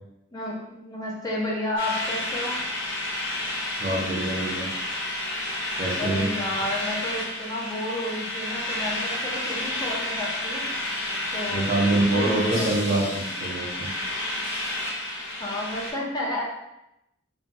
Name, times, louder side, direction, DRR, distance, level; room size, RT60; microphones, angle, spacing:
voice 1, 0.3-2.6 6.0-10.7 11.3-11.7 12.1-13.3 15.4-16.4, left 1 dB, 20° left, -5 dB, 0.5 m, -31 dB
sound 1, 1.8-15.9, left 1 dB, 65° left, 0.8 m, -30 dB
voice 2, 3.8-4.7 5.7-6.3 11.5-13.9, right 2 dB, 40° right, -3 dB, 0.6 m, -25 dB
3.0 x 2.7 x 2.2 m, 0.86 s
head